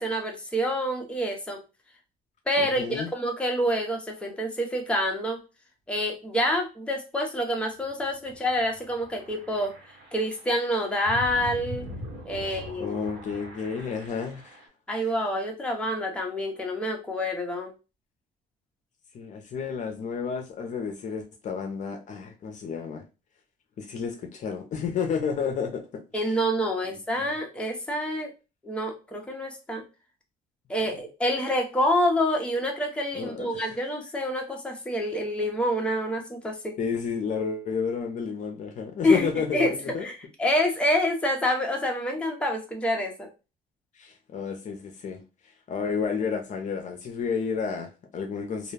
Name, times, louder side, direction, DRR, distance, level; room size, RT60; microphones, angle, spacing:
voice 1, 0.0-1.6 2.5-5.4 5.9-9.7 10.1-11.9 12.3-13.0 14.9-17.7 26.1-28.3 28.6-29.8 30.7-36.7 39.0-43.3, equal, 5° left, 0.7 m, -27 dB
voice 2, 2.6-3.1 12.4-14.6 19.1-23.0 23.8-26.3 26.8-27.3 33.2-33.8 36.8-39.7 39.9-40.1 43.9-45.2 45.7-48.7, left 6 dB, 45° left, 0.6 m, -31 dB
sound 1, 7.7-14.7, equal, 80° right, 1.3 m, -42 dB
2.3 x 2.2 x 3.2 m
cardioid pair, 110°, 17 cm